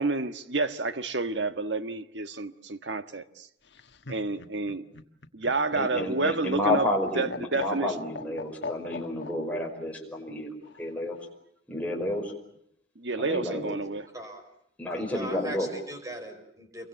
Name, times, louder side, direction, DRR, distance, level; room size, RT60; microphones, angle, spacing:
voice 1, 0.0-3.5 4.1-4.8 5.3-6.8 7.1-7.9 13.0-14.1, right 3 dB, 75° right, 1.5 m, -29 dB
Laughter, 3.6-9.3 10.6-11.3, left 3 dB, 65° left, 1.5 m, -40 dB
voice 2, 5.7-11.2 11.7-12.3 13.2-13.8 14.8-15.7, left 1 dB, 10° left, 5.3 m, -30 dB
voice 3, 15.0-16.9, equal, 20° right, 5.1 m, -40 dB
28.5 x 24.0 x 7.0 m
head